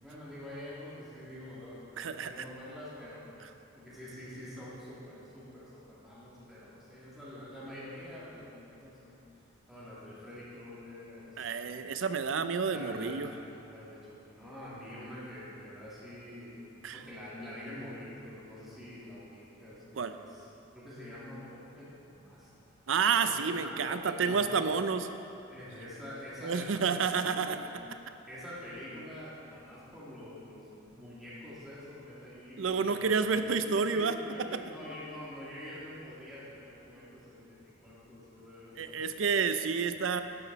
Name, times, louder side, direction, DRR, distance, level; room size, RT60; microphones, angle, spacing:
voice 1, 0.0-3.3 3.7-9.1 9.7-12.1 12.7-13.2 13.5-20.5 20.7-22.5 23.2-23.3 23.6-24.7 25.5-27.8 28.3-33.6 33.9-39.6 40.1-40.2, left 1 dB, ahead, -10 dB, 2.5 m, -46 dB
voice 2, 2.0-2.3 11.4-13.3 16.8-17.0 20.0-20.1 22.9-25.1 26.4-27.6 32.6-34.2 38.8-40.2, right 5 dB, 85° right, 10 dB, 0.5 m, -29 dB
11.5 x 9.2 x 4.0 m, 2.8 s
head